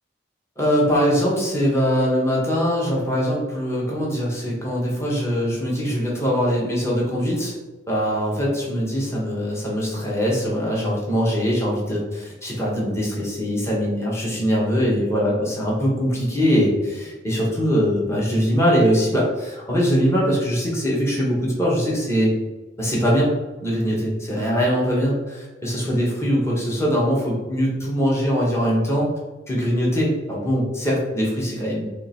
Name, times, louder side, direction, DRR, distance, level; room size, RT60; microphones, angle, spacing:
voice 1, 0.6-7.5 7.9-22.3 22.8-23.3 23.6-29.1 29.5-31.9, equal, 15° left, -4 dB, 1.1 m, -22 dB
3.8 x 3.1 x 4.4 m, 1.2 s
head